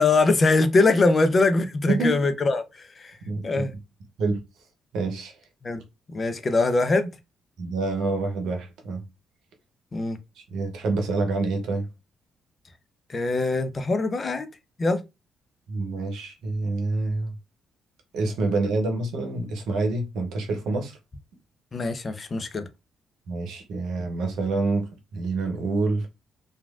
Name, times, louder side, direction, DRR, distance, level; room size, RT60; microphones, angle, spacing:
voice 1, 0.0-3.2 3.4-3.7 5.6-5.8 6.1-7.1 9.9-10.2 13.1-14.5 14.8-15.0 21.7-22.6, left 3 dB, 40° left, 0.6 m, -22 dB
voice 2, 1.9-2.2 3.2-3.7 4.2-4.4 4.9-5.3 7.6-9.0 10.4-11.9 15.7-17.3 18.1-21.0 23.3-26.1, right 3 dB, 75° right, 0.8 m, -27 dB
3.0 x 2.4 x 2.4 m
hypercardioid pair, 50°, 0 cm